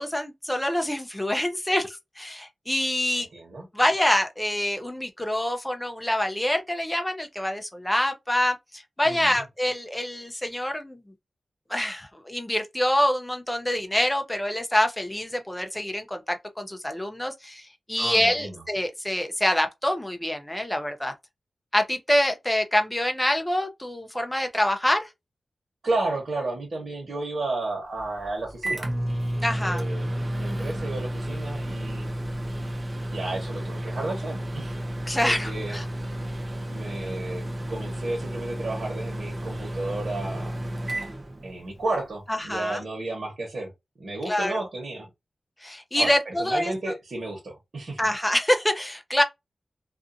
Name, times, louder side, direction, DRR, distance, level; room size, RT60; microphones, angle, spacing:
voice 1, 0.0-3.3 3.7-11.0 11.7-21.1 21.7-25.1 29.4-29.8 35.1-35.8 42.3-42.8 44.3-44.7 45.6-46.7 48.0-49.2, left 1 dB, 10° left, 0.5 m, -26 dB
voice 2, 3.3-3.7 9.0-9.4 18.0-18.6 25.8-28.9 29.6-32.1 33.1-34.8 35.2-35.8 36.6-40.6 41.4-43.7 44.0-45.1 45.9-48.0, right 2 dB, 65° right, 1.1 m, -32 dB
Microwave oven, 28.0-42.0, right 1 dB, 35° right, 0.6 m, -32 dB
2.5 x 2.4 x 2.5 m
wide cardioid pair, 115°, 0 cm